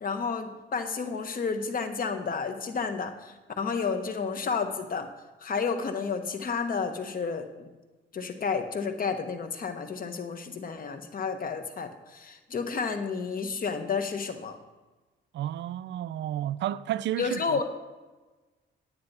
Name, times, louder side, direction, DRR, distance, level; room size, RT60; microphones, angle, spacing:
voice 1, 0.0-5.1 5.4-7.7 8.1-14.6 17.2-17.6, left 5 dB, 45° left, 1.2 m, -31 dB
voice 2, 15.3-17.6, right 12 dB, 65° right, 0.4 m, -32 dB
10.0 x 9.4 x 4.2 m
cardioid pair, 90°, 20 cm